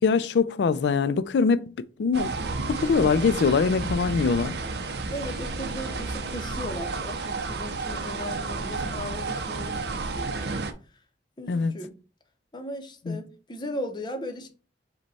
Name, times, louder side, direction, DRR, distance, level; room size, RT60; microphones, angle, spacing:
voice 1, 0.0-1.7 2.0-2.3 2.7-4.5 11.5-11.7 13.1-13.2, left 5 dB, 70° left, 0.3 m, -23 dB
sound 1, 2.1-10.7, right 3 dB, 65° right, 0.6 m, -31 dB
voice 2, 5.1-10.5 11.4-11.9 12.5-14.5, left 1 dB, 25° left, 0.7 m, -37 dB
5.2 x 2.2 x 4.1 m
head